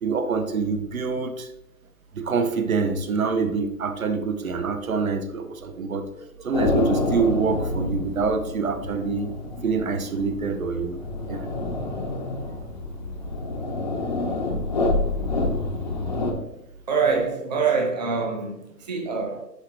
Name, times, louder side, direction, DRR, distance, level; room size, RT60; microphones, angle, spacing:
voice 1, 0.0-1.5 2.1-9.3 9.6-11.0 11.3-11.5 11.9-12.0 14.5-14.7, right 5 dB, 55° right, 0.8 m, -26 dB
sound 1, 6.5-16.3, left 2 dB, 30° left, 0.7 m, -28 dB
voice 2, 16.9-19.5, right 5 dB, 25° right, 0.7 m, -25 dB
9.5 x 3.9 x 3.2 m
hypercardioid pair, 155°, 49 cm